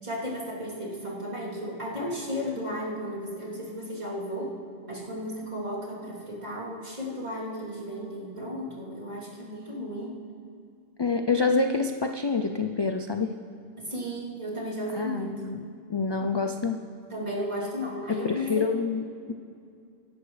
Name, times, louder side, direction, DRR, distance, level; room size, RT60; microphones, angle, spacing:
voice 1, 0.0-4.6 4.9-10.2 13.8-15.4 17.1-18.7, equal, 45° right, -7 dB, 3.2 m, -34 dB
voice 2, 11.0-13.3 14.9-16.8 18.1-19.3, left 4 dB, 40° left, 6 dB, 0.4 m, -27 dB
24.0 x 11.0 x 3.2 m, 2.4 s
omnidirectional pair, 1.0 m